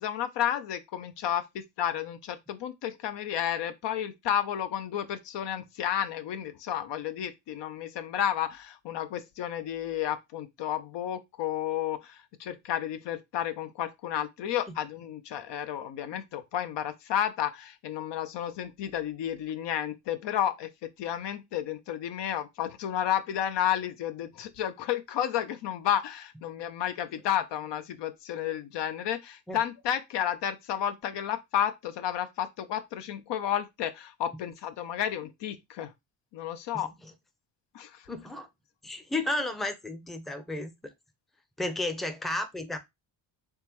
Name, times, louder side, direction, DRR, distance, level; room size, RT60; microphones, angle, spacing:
voice 1, 0.0-35.9 36.3-36.9 37.7-38.1, left 10 dB, 60° left, 0.6 m, -32 dB
voice 2, 38.1-38.5 38.8-40.7 41.6-42.8, left 2 dB, ahead, 0.6 m, -32 dB
3.5 x 3.2 x 3.0 m
supercardioid pair, 65°, 47 cm